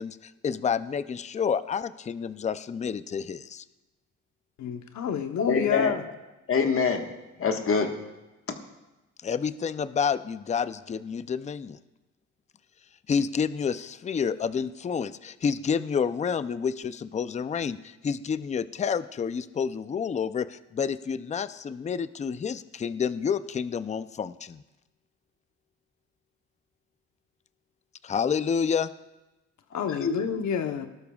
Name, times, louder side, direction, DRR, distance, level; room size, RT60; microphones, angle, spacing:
voice 1, 0.0-3.6 9.2-11.8 13.1-24.6 28.0-28.9, left 6 dB, 25° left, 0.4 m, -29 dB
voice 2, 4.6-6.0 29.7-30.9, left 8 dB, 70° left, 1.0 m, -29 dB
voice 3, 5.4-5.9 6.5-7.1 7.4-7.9 29.7-30.1, left 5 dB, 45° left, 1.5 m, -25 dB
19.0 x 12.0 x 2.3 m
cardioid pair, 90°, 30 cm